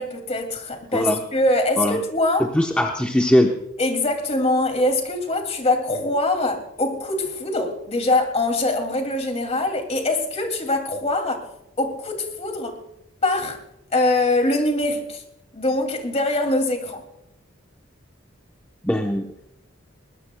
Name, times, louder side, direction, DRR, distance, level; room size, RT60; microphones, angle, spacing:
voice 1, 0.0-2.5 3.8-11.4 11.8-12.8 13.2-13.6 13.9-15.2 15.5-17.0, left 2 dB, 35° left, 5 dB, 2.6 m, -23 dB
voice 2, 2.4-3.5 18.8-19.2, left 1 dB, 5° left, 1 dB, 0.9 m, -20 dB
21.0 x 20.5 x 2.3 m, 0.86 s
head